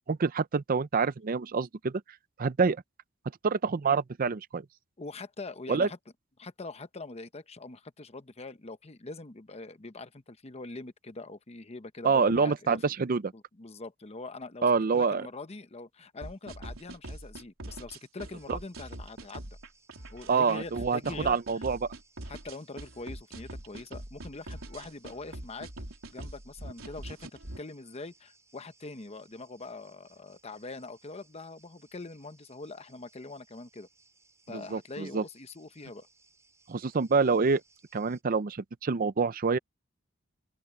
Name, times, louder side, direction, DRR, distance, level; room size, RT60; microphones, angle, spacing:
voice 1, 0.1-2.0 2.4-2.8 3.4-4.6 5.7-5.9 12.0-13.2 14.6-15.3 18.5-18.6 20.3-21.9 34.5-35.2 36.7-37.6 37.9-39.6, right 5 dB, 45° right, 0.5 m, -26 dB
voice 2, 5.0-6.0 6.4-13.0 13.3-19.5 20.1-21.7 22.3-25.7 26.1-33.9 34.5-36.1, left 3 dB, 30° left, 0.9 m, -43 dB
sound 1, 16.2-27.6, right 1 dB, 85° right, 3.5 m, -43 dB
sound 2, 18.4-38.2, right 3 dB, 15° right, 7.3 m, -65 dB
open air
head